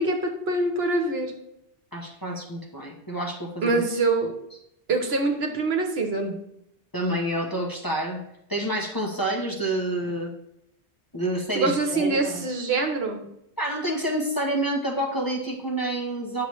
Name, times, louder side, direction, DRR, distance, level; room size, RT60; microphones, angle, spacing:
voice 1, 0.0-1.3 3.6-4.3 4.9-6.4 11.5-13.3, right 3 dB, 65° right, 4 dB, 1.3 m, -24 dB
voice 2, 1.9-3.8 6.9-8.2 8.5-10.3 11.1-12.4 13.6-16.5, right 1 dB, 20° left, -1 dB, 0.9 m, -28 dB
10.0 x 6.7 x 3.1 m, 0.80 s
omnidirectional pair, 1.2 m